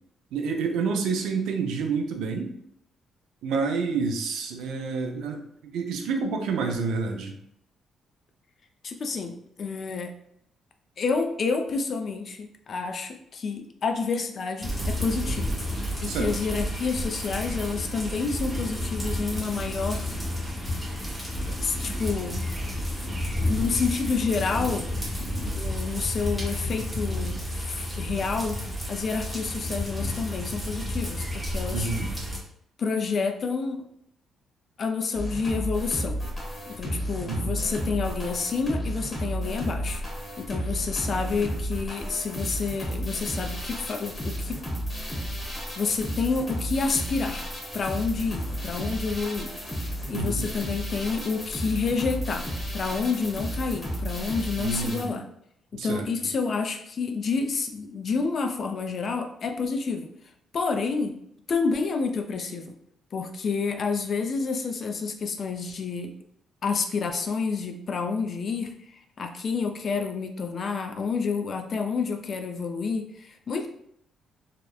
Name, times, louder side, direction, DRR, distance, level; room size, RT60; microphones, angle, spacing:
voice 1, 0.3-2.5 3.4-7.3 16.0-16.3 31.7-32.1 37.3-37.6 50.1-50.5 54.6-55.2 55.7-56.0, right 4 dB, 85° right, 4 dB, 0.4 m, -28 dB
voice 2, 8.8-10.1 11.0-15.5 16.0-20.1 21.5-22.4 23.0-24.9 25.2-28.6 28.9-31.9 32.8-33.8 34.8-36.2 36.7-40.0 40.4-44.6 45.8-47.4 47.7-49.5 50.1-52.5 52.7-55.2 55.7-60.1 60.5-61.1 61.5-62.8 63.1-66.1 66.6-68.7 69.2-73.7, left 4 dB, 50° left, 5 dB, 0.3 m, -29 dB
sound 1, 14.6-32.4, left 1 dB, 5° right, 0.7 m, -31 dB
sound 2, 35.1-55.0, equal, 30° left, 0.9 m, -32 dB
2.8 x 2.0 x 2.2 m, 0.71 s
cardioid pair, 90°, 0 cm